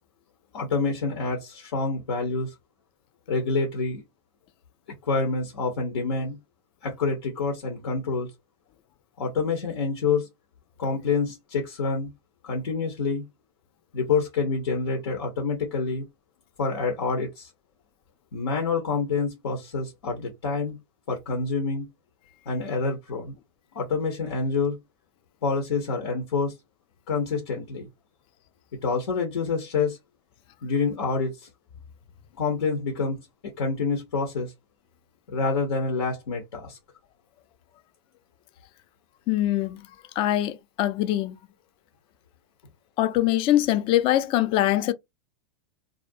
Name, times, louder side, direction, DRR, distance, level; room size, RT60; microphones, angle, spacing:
voice 1, 0.5-2.5 3.3-4.0 5.1-6.4 6.8-8.3 9.2-10.3 10.8-12.1 12.4-13.2 13.9-16.1 16.6-17.5 18.3-20.8 21.1-21.9 22.5-23.3 23.7-24.8 25.4-26.5 27.1-27.9 28.8-30.0 30.6-31.5 32.4-33.2 33.6-34.5 35.3-36.8, left 4 dB, 85° left, 0.8 m, -27 dB
voice 2, 39.3-39.8 40.2-41.4 43.0-44.9, left 13 dB, 40° left, 0.4 m, -23 dB
2.4 x 2.0 x 2.5 m
hypercardioid pair, 115°, 14 cm